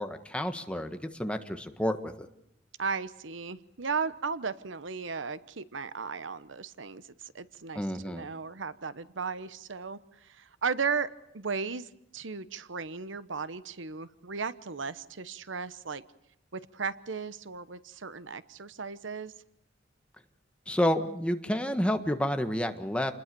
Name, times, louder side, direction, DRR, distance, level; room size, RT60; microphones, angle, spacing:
voice 1, 0.0-2.3 7.7-8.2 20.7-23.1, equal, 5° left, 7 dB, 1.5 m, -30 dB
voice 2, 2.8-11.1 11.3-16.0 16.5-19.3, right 5 dB, 85° right, 14 dB, 1.0 m, -36 dB
28.5 x 20.5 x 6.9 m, 0.78 s
head